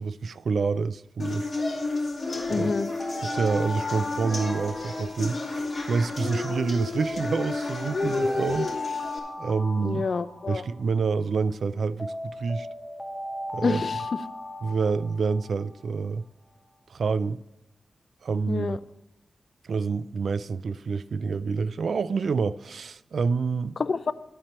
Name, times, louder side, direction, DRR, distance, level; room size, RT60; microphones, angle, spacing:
voice 1, 0.0-1.5 2.5-2.7 3.2-5.4 5.9-8.7 9.4-10.0 10.5-12.7 13.5-13.8 14.6-16.3 16.9-17.4 18.2-18.8 19.6-23.8, right 5 dB, 75° right, 0.3 m, -27 dB
sound 1, 1.2-9.2, left 3 dB, 35° left, 2.5 m, -31 dB
Alarm, 2.3-6.5 7.0-11.5 12.0-15.8, left 2 dB, 10° left, 1.0 m, -37 dB
voice 2, 2.5-2.9 9.8-10.6 13.6-14.0 18.5-18.8 23.8-24.1, left 4 dB, 55° left, 0.4 m, -27 dB
10.5 x 4.3 x 7.9 m
wide cardioid pair, 150°, 0 cm